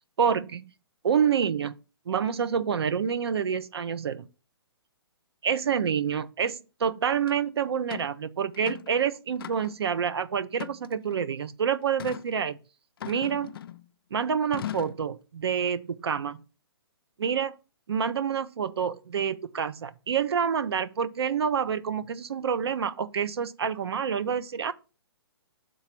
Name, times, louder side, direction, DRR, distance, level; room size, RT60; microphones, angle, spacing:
voice 1, 0.2-0.7 1.0-1.8 2.1-4.3 5.4-12.6 13.0-13.6 14.1-16.4 17.2-17.5 17.9-24.7, right 7 dB, 75° right, 0.7 m, -27 dB
sound 1, 7.3-7.4 7.9-8.1 8.5-9.0 9.4-9.9 10.5-11.2 12.0-12.3 13.0-13.9 14.5-15.0, left 11 dB, 60° left, 0.4 m, -38 dB
6.2 x 4.0 x 5.8 m
hypercardioid pair, 140°, 13 cm